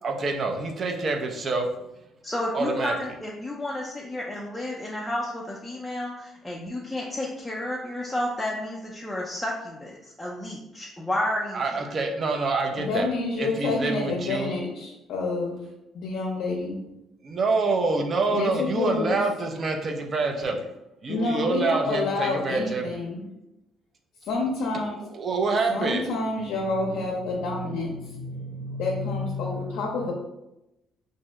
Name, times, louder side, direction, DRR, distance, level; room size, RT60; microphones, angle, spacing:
voice 1, 0.0-1.6 2.5-2.9 11.5-13.1 13.4-14.6 17.2-20.7 21.0-23.0 25.1-26.1 27.4-30.1, right 3 dB, 45° right, 3 dB, 0.5 m, -27 dB
voice 2, 2.2-6.1 6.5-11.9, left 1 dB, 5° left, -4 dB, 0.4 m, -31 dB
voice 3, 12.8-15.6 15.9-16.8 18.3-19.2 21.1-23.3 24.2-25.0 25.7-27.9 28.8-30.1, left 3 dB, 75° left, -1 dB, 0.5 m, -28 dB
2.7 x 2.0 x 3.5 m, 0.91 s
cardioid pair, 80°, 0 cm